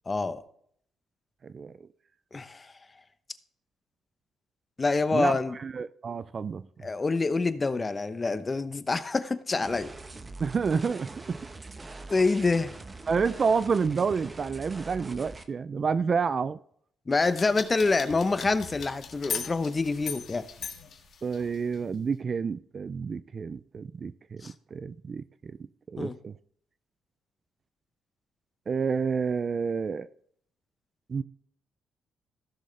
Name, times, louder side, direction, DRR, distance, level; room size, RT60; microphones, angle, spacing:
voice 1, 0.1-0.4 2.3-2.7 4.8-5.5 6.8-9.9 12.1-12.7 17.1-20.4 24.4-24.5 26.0-26.1, left 3 dB, 25° left, 0.8 m, -26 dB
voice 2, 1.4-1.9 5.1-5.3 5.6-6.7 10.4-11.4 13.1-16.6 21.2-25.6 25.9-26.3 28.7-30.1 31.1-31.2, right 5 dB, 40° right, 0.4 m, -29 dB
sound 1, 9.6-15.4, right 2 dB, 25° right, 1.0 m, -43 dB
sound 2, 17.2-21.8, left 6 dB, 60° left, 1.6 m, -39 dB
15.5 x 6.4 x 3.3 m
cardioid pair, 90°, 0 cm